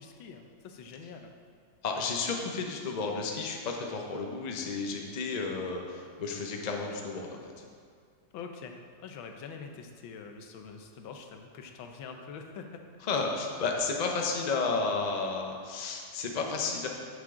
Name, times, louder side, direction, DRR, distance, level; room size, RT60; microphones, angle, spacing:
voice 1, 0.0-1.3 8.3-12.8, left 5 dB, 90° left, 4 dB, 1.6 m, -45 dB
voice 2, 1.8-7.4 13.0-16.9, left 4 dB, 45° left, 1 dB, 0.5 m, -32 dB
9.5 x 7.3 x 3.8 m, 2.2 s
omnidirectional pair, 2.1 m